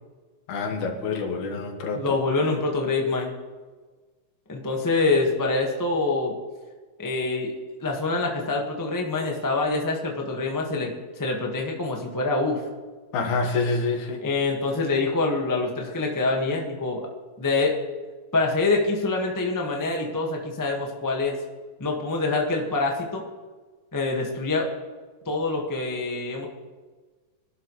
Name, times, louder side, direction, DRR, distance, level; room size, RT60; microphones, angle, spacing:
voice 1, 0.5-2.1 13.1-14.2, left 3 dB, 75° left, 3 dB, 2.9 m, -27 dB
voice 2, 1.9-3.3 4.5-6.3 7.0-7.5 7.8-12.6 14.2-17.1 17.4-17.8 18.3-21.4 21.8-23.2 23.9-24.7 25.2-26.5, left 3 dB, 20° left, 0 dB, 0.5 m, -25 dB
21.5 x 11.5 x 3.2 m, 1.4 s
omnidirectional pair, 3.5 m